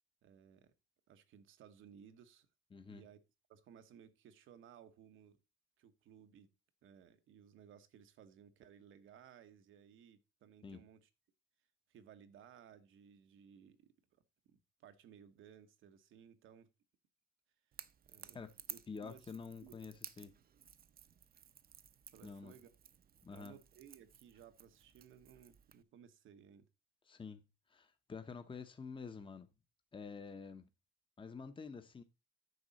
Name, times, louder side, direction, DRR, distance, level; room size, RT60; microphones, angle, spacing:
voice 1, 0.2-0.7 1.1-2.5 2.9-3.2 3.5-5.4 5.8-6.5 6.8-11.1 11.9-13.9 14.5-16.7 18.0-18.4 18.7-19.3 19.6-20.0 22.1-22.7 23.3-26.7, right 8 dB, 80° right, 1.2 m, -60 dB
voice 2, 2.7-3.0 10.6-10.8 18.3-18.5 18.9-20.3 22.2-22.6 23.2-23.6 27.1-27.4 27.7-29.5 29.9-30.7 31.2-32.0, left 5 dB, 25° left, 0.9 m, -48 dB
Crackle / Crack, 17.7-25.8, right 8 dB, 50° right, 0.7 m, -56 dB
9.6 x 6.1 x 4.1 m
cardioid pair, 90°, 20 cm